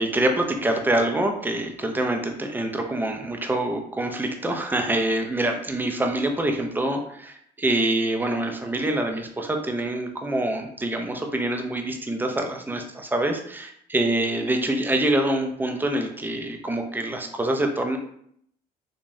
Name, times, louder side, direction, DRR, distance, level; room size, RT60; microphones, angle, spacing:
voice 1, 0.0-18.0, right 1 dB, 10° right, 4 dB, 0.5 m, -25 dB
3.1 x 2.2 x 2.6 m, 0.68 s
supercardioid pair, 80°, 18 cm